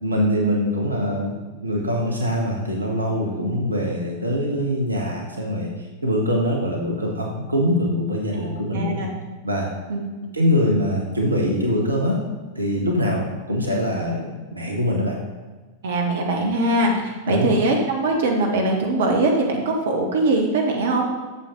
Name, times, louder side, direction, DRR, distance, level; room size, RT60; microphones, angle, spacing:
voice 1, 0.0-5.7 6.0-9.0 9.4-9.7 10.3-12.2 12.5-15.2 16.4-16.5 17.3-17.5, equal, 80° right, 0 dB, 1.2 m, -23 dB
voice 2, 8.4-9.1 9.9-10.0 15.8-21.1, right 2 dB, 60° right, 1 dB, 1.2 m, -22 dB
8.2 x 7.0 x 3.8 m, 1.3 s
figure-of-eight pair, 90°, 0 cm